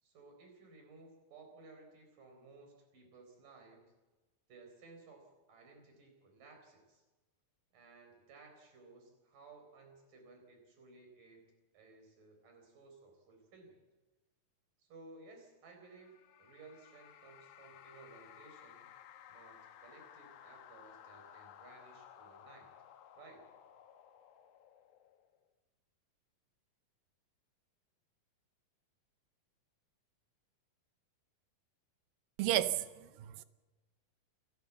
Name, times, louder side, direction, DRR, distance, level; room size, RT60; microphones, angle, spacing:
voice 1, 0.0-3.9 4.5-7.0 7.7-13.8 14.8-18.9 19.3-22.7 23.2-23.5, right 3 dB, 65° right, 5.6 m, -58 dB
sound 1, 15.8-25.5, left 10 dB, 80° left, 3.0 m, -57 dB
voice 2, 32.4-33.4, right 13 dB, 80° right, 2.5 m, -33 dB
30.0 x 11.5 x 8.3 m
omnidirectional pair, 4.2 m